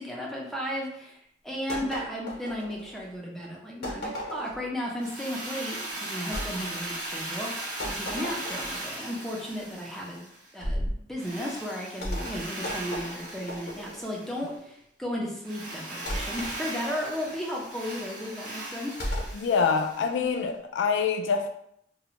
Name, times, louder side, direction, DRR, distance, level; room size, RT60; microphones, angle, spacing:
voice 1, 0.0-10.3 10.5-18.9, equal, ahead, 0.4 m, -34 dB
sound 1, 1.7-3.1 3.8-4.7 6.3-6.5 7.8-8.9 10.6-11.0 12.0-14.1 16.1-16.6 19.0-19.4, equal, 60° left, 0.7 m, -34 dB
Drill, 5.0-10.5 11.2-14.5 15.4-20.2, right 1 dB, 45° right, 0.7 m, -38 dB
voice 2, 19.3-21.5, left 5 dB, 80° left, 0.3 m, -25 dB
2.5 x 2.1 x 2.9 m
head